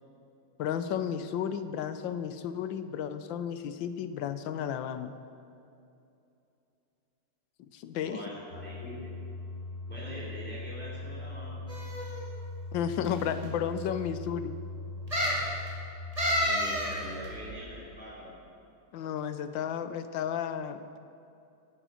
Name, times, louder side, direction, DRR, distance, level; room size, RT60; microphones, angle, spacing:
voice 1, 0.6-5.1 7.7-8.2 12.7-14.6 18.9-21.0, left 8 dB, 85° left, 11 dB, 1.4 m, -33 dB
voice 2, 8.0-9.1 9.9-11.6 16.4-18.5, equal, 5° left, -7 dB, 3.3 m, -43 dB
sound 1, 8.5-17.8, left 3 dB, 45° left, 2.0 m, -41 dB
sound 2, 11.7-12.2 13.0-13.1 13.4-13.5 15.1-15.5 16.2-16.9 17.2-17.3, equal, 20° right, 2.3 m, -29 dB
16.0 x 8.1 x 6.4 m, 2.7 s
omnidirectional pair, 2.0 m